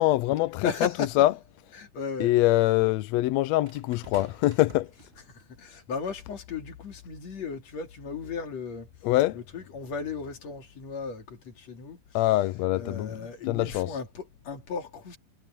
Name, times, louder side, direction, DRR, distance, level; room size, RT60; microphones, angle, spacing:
voice 1, 0.0-0.9 1.2-1.3 2.2-4.9 9.0-9.4 12.1-13.1 13.5-13.9, left 16 dB, 80° left, 1.6 m, -24 dB
voice 2, 0.6-1.1 1.8-2.3 5.3-8.9 9.3-12.0 12.8-15.2, left 5 dB, 60° left, 3.8 m, -36 dB
sound 1, 0.8-0.9 3.7-5.6 6.5-6.7, right 2 dB, 20° right, 2.4 m, -50 dB
omnidirectional pair, 3.6 m